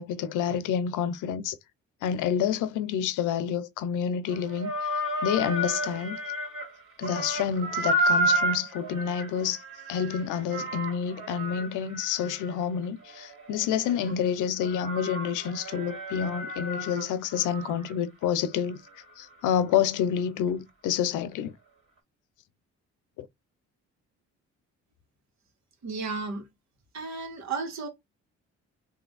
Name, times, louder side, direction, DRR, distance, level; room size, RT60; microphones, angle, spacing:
voice 1, 0.0-1.6 2.0-4.7 5.2-6.2 7.0-9.6 9.9-18.8 19.2-21.5 23.2-23.3, left 8 dB, 90° left, 0.6 m, -28 dB
sound 1, 4.3-6.7 7.0-14.1 14.6-17.9 18.2-18.3 18.9-19.0, right 1 dB, 40° right, 2.2 m, -31 dB
voice 2, 25.8-26.4 26.9-27.9, right 4 dB, 65° right, 1.6 m, -33 dB
3.3 x 2.7 x 3.9 m
cardioid pair, 90°, 30 cm